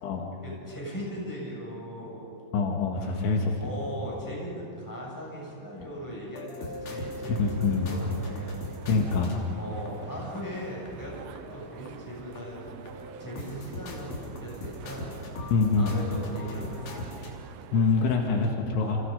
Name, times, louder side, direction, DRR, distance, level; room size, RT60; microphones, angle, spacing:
voice 1, 0.4-2.3 2.9-8.5 9.5-12.6 13.2-17.1 18.8-19.0, equal, 5° left, -4 dB, 6.6 m, -39 dB
voice 2, 2.5-3.5 7.4-7.9 8.9-9.4 15.5-16.0 17.7-19.0, left 4 dB, 75° left, 1 dB, 3.9 m, -25 dB
sound 1, 6.3-10.4 10.9-11.0 11.4-12.1 12.4-17.4, left 2 dB, 45° left, 4.0 m, -40 dB
sound 2, 6.9-18.5, right 9 dB, 85° right, 3.4 m, -46 dB
29.0 x 28.0 x 5.3 m, 2.6 s
omnidirectional pair, 5.6 m